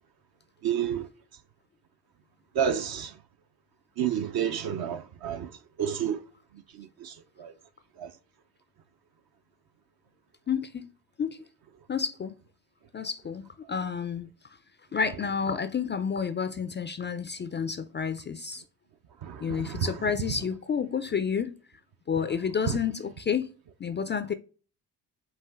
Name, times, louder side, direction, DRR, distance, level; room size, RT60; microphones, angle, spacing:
voice 1, 0.6-1.0 2.6-3.1 4.0-5.5 5.8-6.2 7.0-7.1 7.4-7.5 8.0-8.1 19.2-19.4 19.7-19.9, right 9 dB, 55° right, 0.6 m, -29 dB
voice 2, 10.5-10.9 11.2-11.4 11.9-12.3 12.9-14.3 14.9-18.6 19.4-21.5 22.1-23.5 23.8-24.3, left 6 dB, 25° left, 0.3 m, -30 dB
4.9 x 2.6 x 3.5 m
supercardioid pair, 55°, 46 cm